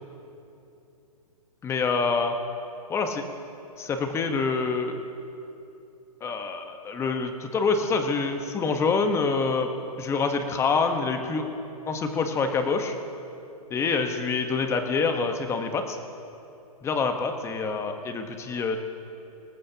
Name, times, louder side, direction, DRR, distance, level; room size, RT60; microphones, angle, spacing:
voice 1, 1.6-2.3 2.9-3.2 3.8-5.0 6.2-9.7 10.0-11.5 11.9-13.0 13.7-16.0 16.8-18.8, left 4 dB, 15° left, 6 dB, 1.1 m, -26 dB
25.5 x 14.0 x 2.9 m, 2.8 s
hypercardioid pair, 140°, 20 cm